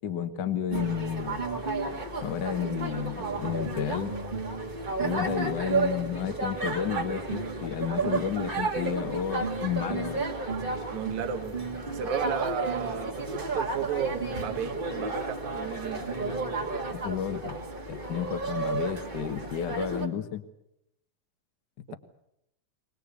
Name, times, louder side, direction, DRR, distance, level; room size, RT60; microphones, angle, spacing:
voice 1, 0.0-1.4 2.2-4.1 5.0-10.3 16.9-17.6 17.9-20.4 21.8-21.9, left 8 dB, 45° left, 8 dB, 1.5 m, -32 dB
sound 1, 0.7-20.1, right 3 dB, 20° right, 1.6 m, -32 dB
voice 2, 10.9-11.6 11.9-16.0 21.9-22.0, right 8 dB, 70° right, 7 dB, 2.5 m, -33 dB
24.0 x 19.5 x 8.4 m, 0.81 s
omnidirectional pair, 3.6 m